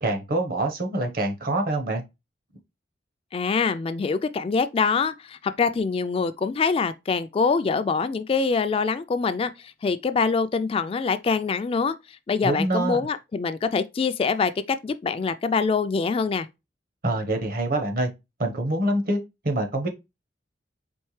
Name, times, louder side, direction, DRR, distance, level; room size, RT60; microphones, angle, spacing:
voice 1, 0.0-2.0 12.4-13.0 17.0-18.1 18.4-19.2 19.4-19.9, right 1 dB, 55° right, 1.1 m, -25 dB
voice 2, 3.3-12.0 12.3-16.5, left 5 dB, 35° left, 0.3 m, -24 dB
4.4 x 3.1 x 3.2 m
head